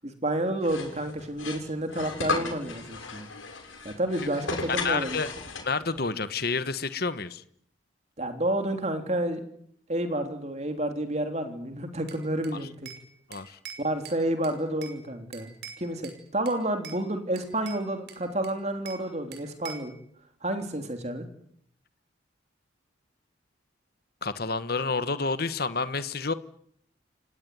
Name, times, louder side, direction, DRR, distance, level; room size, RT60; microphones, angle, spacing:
voice 1, 0.0-3.3 3.9-5.2 8.2-9.4 9.9-12.9 13.8-15.5 15.8-19.9 20.4-21.3, right 1 dB, 35° right, 3.4 m, -30 dB
sound 1, 0.6-6.0, left 3 dB, 90° left, 6.7 m, -35 dB
voice 2, 4.7-5.3 5.6-7.4 12.6-12.7 13.3-13.6 24.2-26.3, left 4 dB, 50° left, 1.3 m, -29 dB
Bell / Glass, 12.1-13.1 13.3-15.0 15.3-16.2 16.5-17.0 17.4-19.1 19.3-19.9, right 7 dB, 55° right, 5.6 m, -45 dB
29.5 x 17.0 x 9.7 m
head